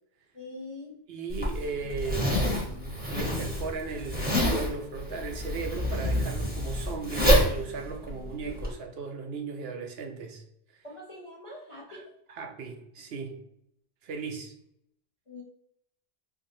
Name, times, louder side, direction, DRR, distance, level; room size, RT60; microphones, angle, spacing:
voice 1, 0.3-0.9 10.8-12.0 15.3-15.4, left 2 dB, 35° left, -4 dB, 0.6 m, -43 dB
voice 2, 1.1-10.4 10.7-10.8 11.9-13.4 14.0-14.5, right 4 dB, 70° right, 3 dB, 0.8 m, -37 dB
Zipper (clothing), 1.3-8.7, equal, 10° right, 0.8 m, -27 dB
4.5 x 2.4 x 2.7 m, 0.76 s
omnidirectional pair, 1.1 m